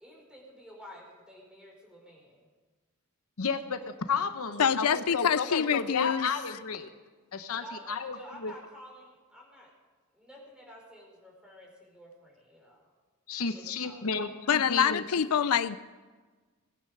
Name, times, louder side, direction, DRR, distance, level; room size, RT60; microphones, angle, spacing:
voice 1, 0.0-2.5 7.5-9.7 10.1-12.9 13.5-14.3, equal, 5° right, -2 dB, 4.8 m, -51 dB
voice 2, 3.4-6.9 7.3-8.2 8.4-8.5 13.3-15.1, left 5 dB, 70° left, 9 dB, 0.9 m, -32 dB
voice 3, 4.6-6.3 14.5-15.8, left 8 dB, 90° left, 15 dB, 0.5 m, -26 dB
19.5 x 9.7 x 6.6 m, 1.3 s
head